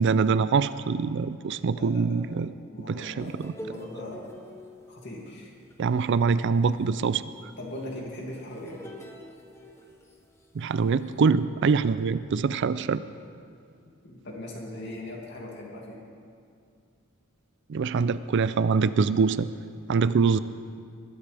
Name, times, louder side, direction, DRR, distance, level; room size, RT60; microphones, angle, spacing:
voice 1, 0.0-2.5 2.9-3.5 5.8-7.2 10.5-13.0 17.7-19.5 19.9-20.4, right 5 dB, 55° right, 15 dB, 0.4 m, -24 dB
voice 2, 1.7-2.3 2.7-4.3 4.9-5.5 7.6-8.8 14.0-16.0, left 1 dB, 55° left, -2 dB, 2.5 m, -40 dB
sound 1, 3.2-10.4 11.1-11.3, equal, 10° left, 0.9 m, -46 dB
21.0 x 11.5 x 3.5 m, 2.3 s
head